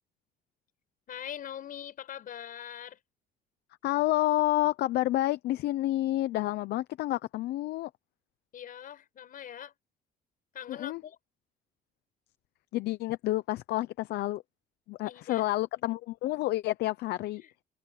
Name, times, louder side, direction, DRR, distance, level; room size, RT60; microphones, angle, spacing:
voice 1, 1.1-3.0 8.5-9.7 10.5-11.2 15.0-15.5 17.4-17.5, left 10 dB, 55° left, 6.1 m, -42 dB
voice 2, 3.8-7.9 10.7-11.0 12.7-14.4 14.9-17.4, left 16 dB, 75° left, 0.8 m, -29 dB
cardioid pair, 110°, 17 cm